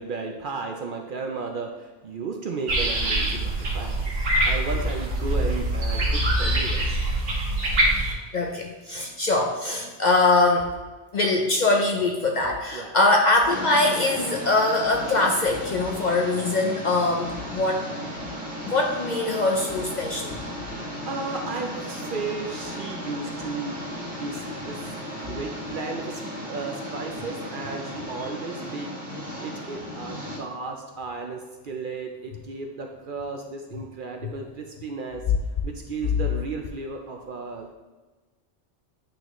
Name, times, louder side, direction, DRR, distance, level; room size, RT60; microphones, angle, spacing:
voice 1, 0.0-4.1 4.5-6.8 7.2-7.4 12.7-13.0 20.7-24.8 25.2-26.2 26.5-35.2 35.6-37.7, right 4 dB, 60° right, 2 dB, 0.6 m, -34 dB
sound 1, 2.7-8.1, right 1 dB, 90° right, 1.5 m, -24 dB
voice 2, 8.3-10.7 11.1-17.8 18.7-20.4, left 2 dB, 55° left, 1 dB, 0.5 m, -22 dB
sound 2, 13.5-30.4, equal, 5° right, 1.4 m, -35 dB
8.5 x 3.9 x 3.0 m, 1.3 s
omnidirectional pair, 1.2 m